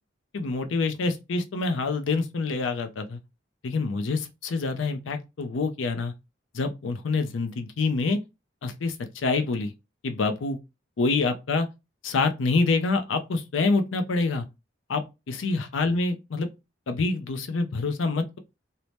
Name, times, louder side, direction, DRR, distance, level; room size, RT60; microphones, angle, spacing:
voice 1, 0.3-3.2 3.6-6.1 6.5-8.2 8.6-9.7 10.0-10.6 11.0-11.7 12.0-14.5 14.9-16.5 16.9-18.4, left 3 dB, 85° left, 0.5 m, -26 dB
2.7 x 2.0 x 3.2 m
head